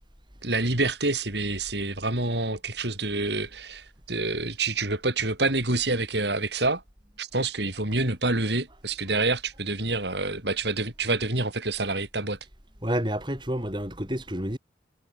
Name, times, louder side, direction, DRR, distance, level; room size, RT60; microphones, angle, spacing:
voice 1, 0.4-6.8 7.2-12.4, right 2 dB, 65° right, 5.4 m, -27 dB
voice 2, 12.8-14.6, equal, 25° right, 7.1 m, -29 dB
head